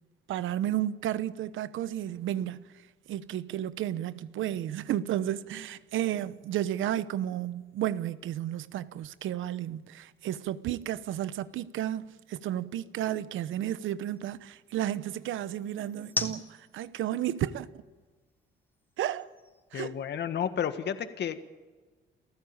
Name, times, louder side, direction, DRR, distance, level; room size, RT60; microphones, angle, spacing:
voice 1, 0.3-2.7 3.1-17.8 19.0-19.3 19.7-20.0, right 12 dB, 80° right, 1.0 m, -32 dB
sound 1, 6.4-20.6, left 2 dB, 10° left, 3.5 m, -46 dB
voice 2, 19.7-21.4, left 8 dB, 60° left, 1.6 m, -31 dB
29.5 x 14.5 x 8.9 m
cardioid pair, 90°, 20 cm